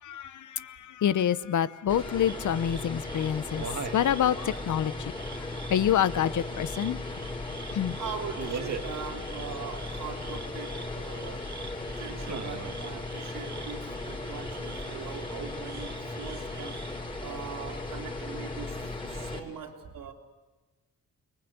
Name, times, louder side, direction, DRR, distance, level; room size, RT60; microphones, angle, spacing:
voice 1, 0.0-3.7 3.9-5.0 5.7-7.0 7.7-8.0, left 10 dB, 65° left, 0.9 m, -27 dB
sound 1, 1.9-19.4, left 2 dB, 15° left, 5.9 m, -37 dB
sound 2, 2.2-17.0, right 6 dB, 55° right, 2.1 m, -43 dB
voice 2, 7.9-16.9 17.2-20.1, right 6 dB, 75° right, 3.4 m, -41 dB
29.5 x 20.5 x 8.1 m
cardioid pair, 105°, 33 cm